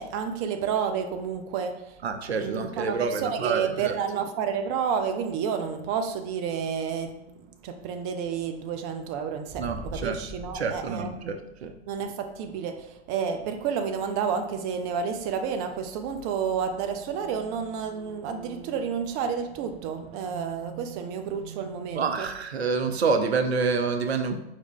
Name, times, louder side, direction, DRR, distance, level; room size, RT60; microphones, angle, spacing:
voice 1, 0.0-2.0 2.4-11.3 11.9-22.3, right 7 dB, 30° right, 0.4 m, -30 dB
voice 2, 2.0-3.9 9.6-10.2 10.5-11.7 22.0-24.4, right 4 dB, 75° right, 0.5 m, -27 dB
sound 1, 9.5-11.8, equal, 5° right, 0.9 m, -42 dB
4.4 x 2.8 x 3.7 m
figure-of-eight pair, 90°, 32 cm